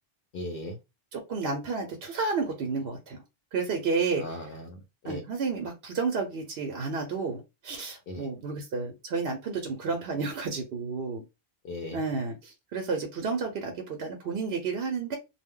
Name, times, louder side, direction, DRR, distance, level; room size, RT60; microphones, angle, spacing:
voice 1, 0.3-0.8 4.2-5.2 8.1-8.3 11.6-12.0, left 1 dB, 65° left, 0.8 m, -38 dB
voice 2, 1.1-3.2 3.5-4.2 5.0-11.2 11.9-15.2, right 4 dB, 75° right, 0.8 m, -31 dB
2.1 x 2.1 x 3.6 m
omnidirectional pair, 1.0 m